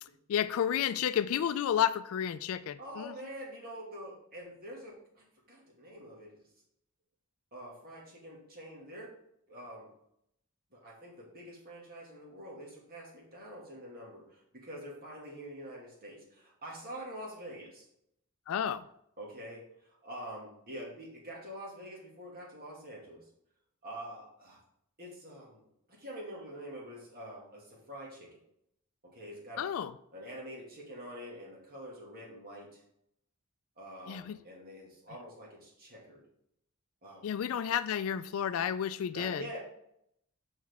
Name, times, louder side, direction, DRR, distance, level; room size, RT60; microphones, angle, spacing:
voice 1, 0.3-3.1 18.5-18.8 29.6-29.9 34.1-34.4 37.2-39.4, left 9 dB, 65° left, 0.3 m, -31 dB
voice 2, 2.8-6.5 7.5-9.1 9.5-9.9 10.7-17.9 19.2-23.2 23.8-24.6 25.0-28.4 29.0-29.7 30.1-32.8 33.8-36.2 37.0-37.3 39.1-39.6, equal, 45° right, 2.1 m, -46 dB
6.5 x 5.9 x 3.5 m
head